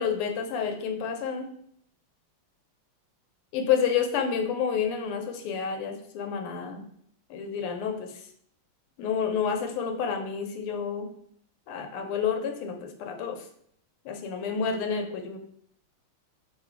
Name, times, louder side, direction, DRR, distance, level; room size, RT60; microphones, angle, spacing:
voice 1, 0.0-1.5 3.5-6.9 7.3-8.1 9.0-11.1 11.7-13.4 14.0-15.4, left 7 dB, 90° left, 5 dB, 1.6 m, -29 dB
3.9 x 2.6 x 4.5 m, 0.67 s
omnidirectional pair, 2.4 m